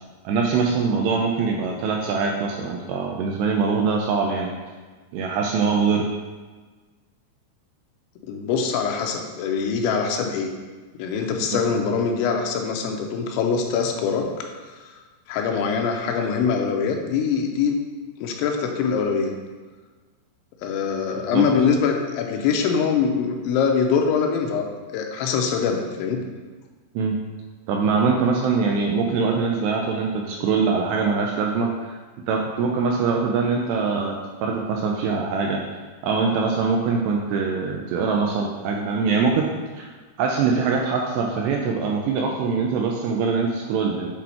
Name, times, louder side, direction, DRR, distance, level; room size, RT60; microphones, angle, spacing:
voice 1, 0.3-4.5 5.1-6.1 11.5-11.6 21.2-21.4 27.0-27.2 27.7-32.0 32.3-34.2 34.4-35.6 36.0-39.5 39.8-39.9 40.2-44.2, right 5 dB, 85° right, 0 dB, 2.5 m, -23 dB
voice 2, 8.3-10.5 11.0-14.5 15.3-17.8 18.2-19.3 20.6-24.7 24.9-26.3, left 6 dB, 85° left, 2 dB, 3.0 m, -23 dB
8.4 x 4.0 x 4.3 m, 1.4 s
omnidirectional pair, 5.4 m